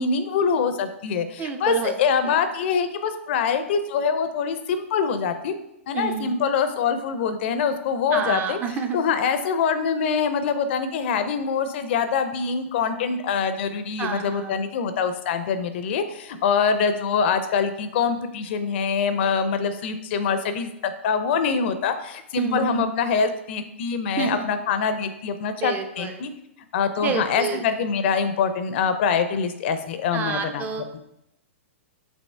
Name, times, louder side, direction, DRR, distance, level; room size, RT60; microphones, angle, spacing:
voice 1, 0.0-5.5 5.9-8.6 8.9-26.3 26.7-30.6 30.9-31.0, left 6 dB, 55° left, 10 dB, 0.5 m, -24 dB
voice 2, 1.4-1.9 2.3-2.4 5.9-6.4 8.1-9.0 14.0-14.6 22.4-22.9 24.2-24.5 25.6-26.2 27.0-27.6 30.1-31.0, right 6 dB, 25° right, 7 dB, 0.4 m, -28 dB
5.3 x 3.0 x 3.3 m, 0.82 s
hypercardioid pair, 120°, 7 cm